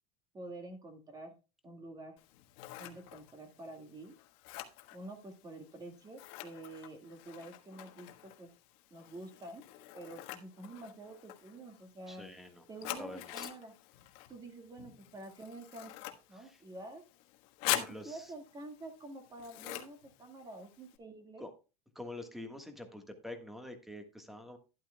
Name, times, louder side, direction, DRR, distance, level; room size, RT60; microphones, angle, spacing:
voice 1, 0.3-1.3 1.6-2.2 2.8-4.1 4.9-8.5 8.9-9.6 9.9-12.3 12.7-13.7 14.3-15.9 16.3-17.0 17.6-21.4, right 2 dB, 20° right, 5 dB, 1.8 m, -48 dB
Scissors, 2.2-21.0, left 15 dB, 60° left, 1.4 m, -45 dB
voice 2, 12.1-12.6 13.0-13.5 16.3-16.6 17.7-18.3 21.4-21.5 21.9-24.6, left 1 dB, ahead, 6 dB, 1.5 m, -46 dB
11.5 x 11.0 x 2.3 m, 0.31 s
supercardioid pair, 145°, 21 cm